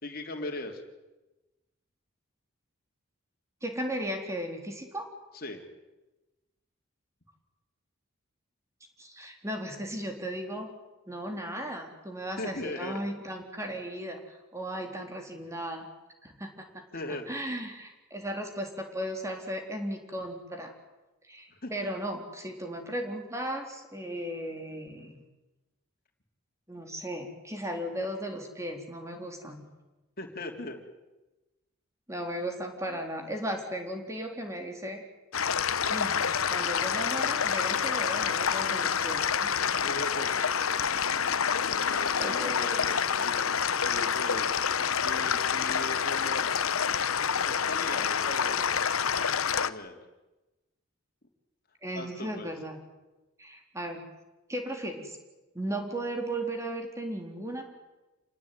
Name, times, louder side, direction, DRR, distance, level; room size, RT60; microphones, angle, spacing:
voice 1, 0.0-0.8 5.3-5.7 12.4-13.0 16.9-17.3 21.5-21.7 30.2-30.8 32.9-33.3 39.7-40.4 41.6-44.5 44.9-46.6 47.4-48.7 49.6-50.0 51.9-52.5, left 2 dB, 45° left, 3 dB, 3.5 m, -39 dB
voice 2, 3.6-5.1 9.0-10.7 11.1-15.9 16.2-16.8 17.3-20.7 21.3-25.2 26.7-29.7 32.1-35.0 35.9-39.6 42.2-42.5 51.8-52.8 53.4-54.0 54.5-55.2 55.5-57.6, right 1 dB, 15° right, 3 dB, 3.8 m, -36 dB
sound 1, 35.3-49.7, left 7 dB, 80° left, 1.0 m, -28 dB
28.0 x 19.5 x 9.2 m, 1.1 s
head